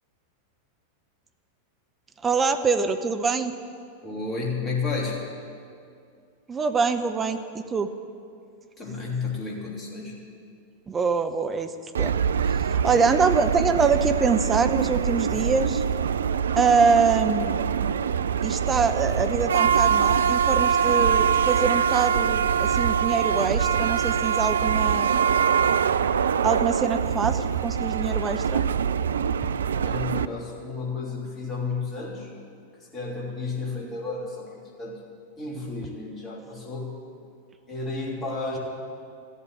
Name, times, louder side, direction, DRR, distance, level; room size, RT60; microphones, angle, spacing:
voice 1, 2.2-3.5 6.5-7.9 10.9-11.7 12.0-12.1 12.6-15.8 16.6-17.6 18.4-25.2 26.4-28.6, right 5 dB, 20° right, 8 dB, 0.8 m, -24 dB
voice 2, 4.0-5.2 8.8-10.2 15.3-15.4 29.8-32.3 32.9-35.0 35.4-36.9 37.7-38.6, left 4 dB, 20° left, -2 dB, 3.1 m, -32 dB
sound 1, 12.0-30.3, right 7 dB, 65° right, 0.3 m, -24 dB
13.5 x 8.4 x 9.3 m, 2.3 s
figure-of-eight pair, 90°, 0 cm